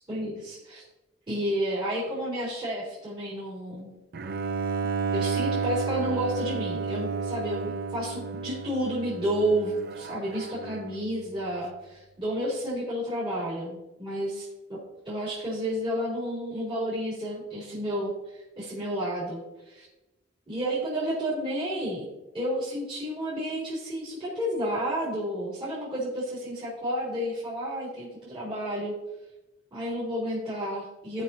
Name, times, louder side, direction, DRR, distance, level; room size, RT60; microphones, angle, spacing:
voice 1, 0.1-0.8 1.3-3.9 5.1-14.4 14.7-14.8 15.0-19.9 20.5-22.1 22.3-29.0 29.7-31.2, equal, 25° right, -10 dB, 3.9 m, -31 dB
Bowed string instrument, 4.1-11.1, right 4 dB, 55° right, 0.5 m, -32 dB
17.5 x 5.9 x 2.9 m, 1.0 s
head